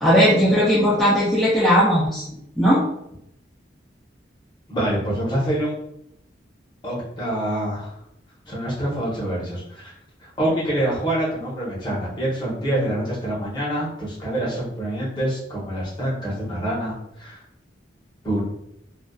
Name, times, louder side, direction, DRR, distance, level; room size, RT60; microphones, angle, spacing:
voice 1, 0.0-2.2 2.6-2.8, equal, ahead, -10 dB, 0.4 m, -17 dB
voice 2, 4.7-5.7 6.8-8.0 8.4-9.9 10.2-17.4 18.2-18.4, right 1 dB, 25° left, -7 dB, 0.8 m, -26 dB
2.4 x 2.3 x 2.2 m, 0.78 s
head